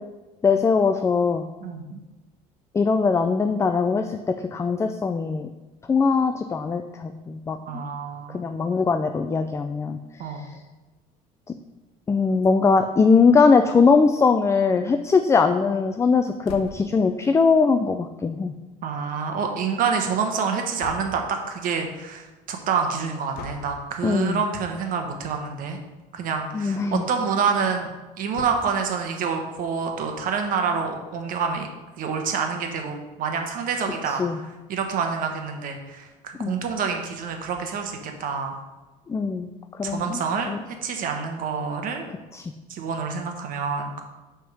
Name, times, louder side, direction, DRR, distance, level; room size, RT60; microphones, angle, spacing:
voice 1, 0.4-1.4 2.7-5.5 5.9-7.8 8.3-10.6 12.1-18.5 24.0-24.4 26.5-27.0 34.1-34.4 36.4-36.6 39.1-40.2 40.5-40.6 42.3-42.5, left 4 dB, 15° left, 8 dB, 0.3 m, -21 dB
voice 2, 1.6-2.0 7.7-8.4 10.2-10.5 18.8-25.8 26.1-27.9 28.2-31.7 32.0-34.4 34.7-38.6 39.8-40.5 40.8-42.0 42.7-44.0, right 5 dB, 60° right, 4 dB, 1.1 m, -27 dB
sound 1, 16.4-17.0 20.8-21.4 23.3-23.8 25.0-25.3 25.7-25.8 26.0-26.1 28.3-28.9, left 3 dB, 75° left, 0.8 m, -40 dB
6.0 x 3.6 x 6.0 m, 1.2 s
cardioid pair, 105°, 16 cm